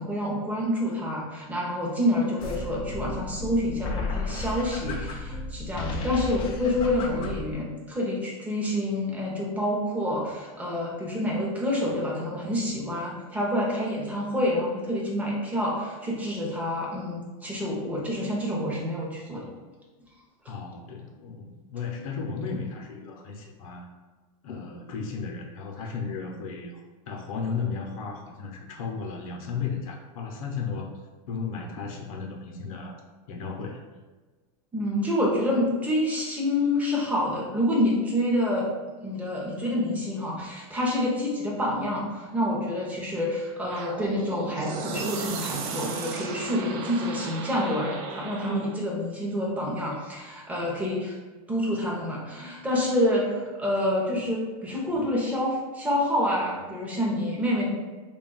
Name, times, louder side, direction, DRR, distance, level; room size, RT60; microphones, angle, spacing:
voice 1, 0.0-19.4 34.7-38.7 39.0-51.2 51.5-57.7, left 1 dB, 10° right, -4 dB, 0.7 m, -27 dB
sound 1, 2.4-7.5, left 2 dB, 30° left, 0.4 m, -33 dB
voice 2, 20.5-23.9 24.4-30.9 31.3-33.0 33.3-33.8, left 5 dB, 65° left, 2 dB, 0.7 m, -34 dB
sound 2, 43.7-48.8, right 5 dB, 45° right, 0.4 m, -36 dB
3.4 x 2.3 x 3.9 m, 1.3 s
supercardioid pair, 155°, 19 cm